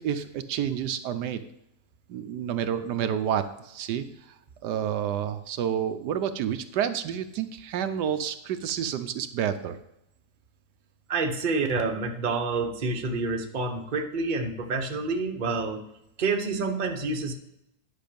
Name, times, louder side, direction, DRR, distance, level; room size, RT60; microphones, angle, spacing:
voice 1, 0.0-1.4 2.1-4.1 4.6-9.8, right 9 dB, 80° right, 9 dB, 1.2 m, -29 dB
voice 2, 11.1-15.8 16.2-17.3, right 3 dB, 35° right, 3 dB, 1.0 m, -28 dB
10.0 x 6.1 x 5.1 m, 0.82 s
omnidirectional pair, 1.8 m